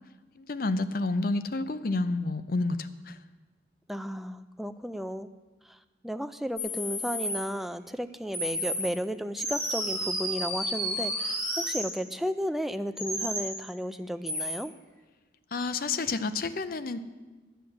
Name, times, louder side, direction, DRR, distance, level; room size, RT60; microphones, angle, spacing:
voice 1, 0.4-3.2 15.5-17.0, left 3 dB, 55° left, 13 dB, 0.6 m, -30 dB
voice 2, 3.9-5.3 5.6-5.8 6.0-14.7, equal, ahead, 9 dB, 0.3 m, -34 dB
sound 1, 6.6-7.4 8.3-8.9 9.4-11.9 13.0-13.5 14.3-14.6, equal, 15° left, 2.4 m, -31 dB
10.0 x 7.9 x 7.4 m, 1.3 s
head